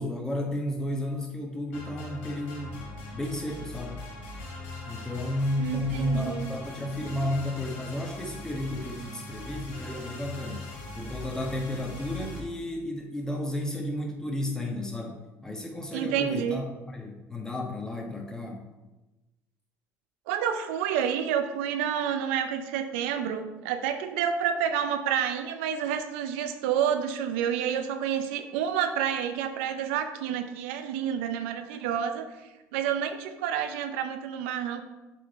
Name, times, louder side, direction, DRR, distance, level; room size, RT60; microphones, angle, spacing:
voice 1, 0.0-2.8 3.1-4.0 4.9-10.7 10.9-18.6, left 1 dB, 10° left, 0 dB, 1.4 m, -32 dB
sound 1, 1.7-12.4, left 2 dB, 90° left, 1.7 m, -41 dB
voice 2, 5.6-6.5 15.9-16.6 20.3-32.2 32.7-34.8, right 8 dB, 85° right, 8 dB, 0.5 m, -29 dB
7.3 x 3.8 x 4.1 m, 1.1 s
supercardioid pair, 85°, 6 cm